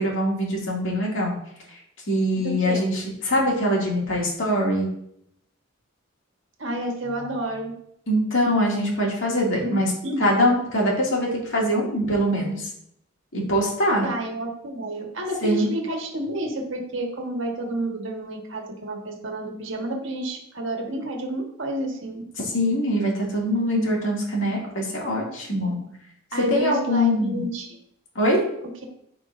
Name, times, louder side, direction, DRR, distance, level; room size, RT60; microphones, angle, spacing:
voice 1, 0.0-1.3 2.1-4.9 8.1-9.9 10.2-12.7 13.3-14.1 15.4-15.7 22.4-25.8 26.3-27.4 28.1-28.4, equal, 70° left, -3 dB, 2.4 m, -23 dB
voice 2, 2.3-2.8 6.6-7.7 9.6-9.7 10.0-10.3 14.0-22.2 26.3-27.8, right 1 dB, 65° right, 2 dB, 1.4 m, -30 dB
13.5 x 4.8 x 2.6 m, 0.73 s
head